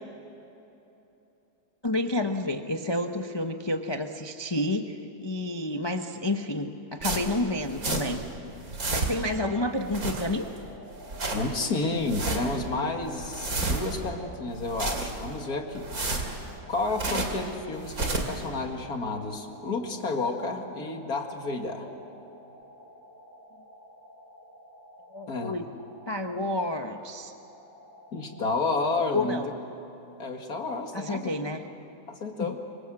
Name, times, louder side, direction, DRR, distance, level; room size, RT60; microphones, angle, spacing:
voice 1, 1.8-8.2 8.9-10.4 25.1-25.6 26.1-27.3 29.1-29.5 30.9-31.6 32.4-32.5, left 1 dB, 20° left, 5 dB, 0.6 m, -30 dB
sound 1, 7.0-8.3 8.6-9.4 9.8-10.6 10.9-11.6 12.0-12.6 13.0-14.1 14.5-15.4 15.8-17.5 17.8-18.4, right 2 dB, 50° right, 3.1 m, -31 dB
sound 2, 10.3-29.5, equal, 10° right, 4.5 m, -51 dB
voice 2, 11.3-15.9 16.7-21.9 25.3-25.6 28.1-29.4 30.2-31.3 32.1-32.6, left 3 dB, 50° left, 3 dB, 2.5 m, -31 dB
26.5 x 24.5 x 7.7 m, 3.0 s
omnidirectional pair, 2.0 m